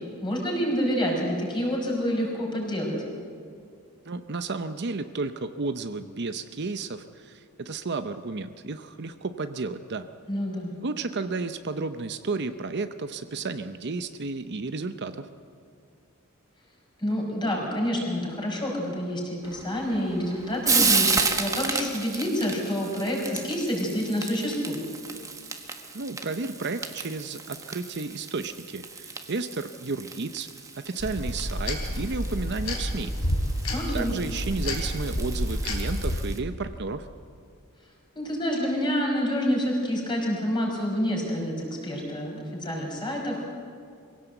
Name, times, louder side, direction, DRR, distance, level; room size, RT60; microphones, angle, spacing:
voice 1, 0.2-3.0 10.3-10.7 17.0-24.8 33.7-34.1 38.2-43.5, equal, 20° left, -1 dB, 5.7 m, -28 dB
voice 2, 4.1-10.1 10.8-15.3 25.9-30.5 30.8-33.1 33.9-37.1, right 3 dB, 50° right, 9 dB, 0.7 m, -32 dB
Frying (food), 19.4-36.4, right 4 dB, 15° right, 1.4 m, -32 dB
sound 1, 31.0-36.2, equal, 75° left, 4.0 m, -29 dB
23.5 x 17.0 x 8.1 m, 2.3 s
head